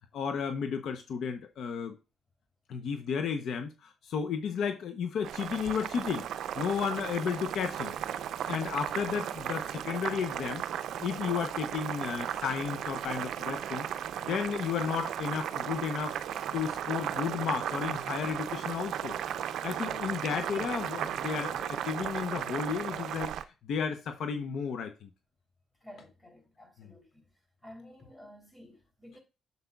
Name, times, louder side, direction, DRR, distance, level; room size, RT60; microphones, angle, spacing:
voice 1, 0.1-1.9 2.7-6.2 6.5-8.0 8.5-10.6 11.0-13.9 14.2-16.2 16.5-19.1 19.6-25.1 26.8-26.9, left 6 dB, 70° left, 0.7 m, -33 dB
Boiling, 5.2-23.4, right 10 dB, 75° right, 0.5 m, -35 dB
voice 2, 25.8-27.3 27.6-29.2, left 1 dB, 15° left, 3.1 m, -52 dB
7.9 x 7.0 x 2.3 m
cardioid pair, 90°, 0 cm